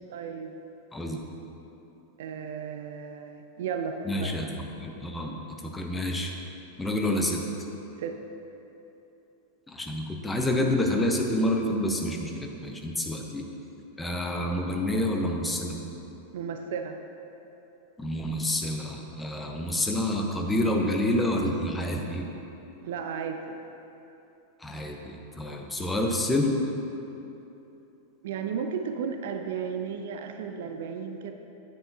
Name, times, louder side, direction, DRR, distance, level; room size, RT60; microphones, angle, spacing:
voice 1, 0.1-0.6 2.2-4.3 8.0-8.2 16.3-17.0 22.8-23.6 28.2-31.3, right 6 dB, 55° right, 6 dB, 0.5 m, -34 dB
voice 2, 4.0-5.4 5.6-6.3 6.8-7.4 9.7-13.4 14.0-15.8 18.0-22.3 24.6-26.6, left 1 dB, 10° left, 1 dB, 0.9 m, -28 dB
9.4 x 9.0 x 2.7 m, 3.0 s
figure-of-eight pair, 90°, 0 cm